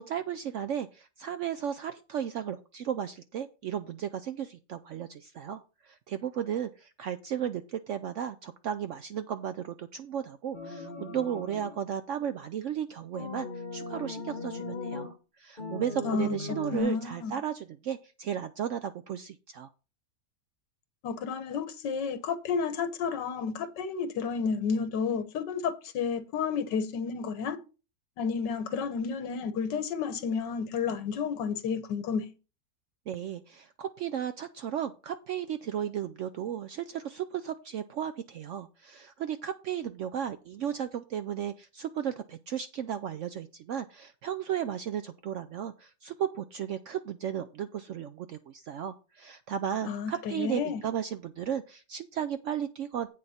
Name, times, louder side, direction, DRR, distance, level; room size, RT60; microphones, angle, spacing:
voice 1, 0.0-19.7 33.1-53.1, right 9 dB, 85° right, 0.6 m, -35 dB
sound 1, 10.5-11.8 13.1-15.1 15.6-16.8, left 3 dB, 30° left, 1.3 m, -38 dB
voice 2, 16.7-17.3 21.0-27.6 28.2-32.3 49.8-50.8, left 6 dB, 85° left, 1.6 m, -31 dB
8.6 x 6.5 x 4.2 m
omnidirectional pair, 1.8 m